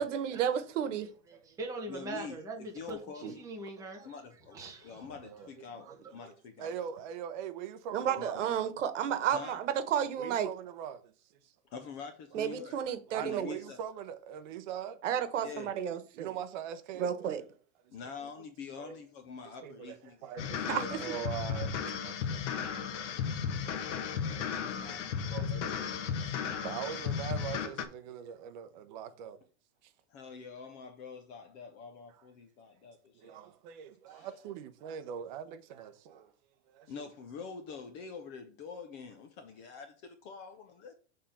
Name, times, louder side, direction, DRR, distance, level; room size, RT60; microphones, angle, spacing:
voice 1, 0.0-1.1 3.2-3.3 7.9-10.5 12.3-13.6 15.0-16.3 16.9-17.4 20.7-21.0, right 9 dB, 85° right, 1.2 m, -32 dB
voice 2, 1.3-4.2 4.5-5.1 5.7-5.8, right 2 dB, 10° right, 0.9 m, -42 dB
voice 3, 1.9-3.4 4.0-6.7 8.2-8.5 9.3-9.6 11.7-12.8 13.2-13.8 15.4-15.7 17.9-20.3 20.6-20.8 24.1-25.0 30.1-33.4 34.1-34.3 36.9-40.9, left 5 dB, 20° left, 0.4 m, -46 dB
voice 4, 5.8-6.1 6.6-8.4 10.2-11.1 12.8-15.0 15.5-15.6 16.1-17.3 18.0-18.1 18.8-19.0 19.6-22.4 23.8-23.9 24.4-24.5 25.3-25.9 26.3-29.4 29.8-29.9 33.1-36.3 36.7-36.9, right 9 dB, 40° right, 0.8 m, -42 dB
sound 1, 20.4-27.9, left 7 dB, 80° left, 1.3 m, -35 dB
6.7 x 3.8 x 5.5 m
supercardioid pair, 170°, 36 cm